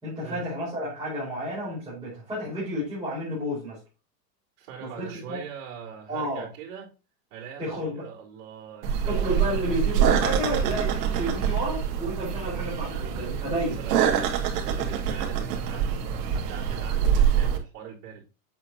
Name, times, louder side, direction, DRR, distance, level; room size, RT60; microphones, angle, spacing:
voice 1, 0.0-3.8 4.8-5.4 6.1-6.5 7.6-8.0 9.1-13.8, equal, 10° right, 4.7 m, -31 dB
voice 2, 4.6-6.9 7.3-9.7 13.5-16.0 16.3-18.2, right 7 dB, 55° right, 3.9 m, -42 dB
sound 1, 8.8-17.6, right 8 dB, 70° right, 2.2 m, -25 dB
8.2 x 7.6 x 2.8 m
supercardioid pair, 160°, 48 cm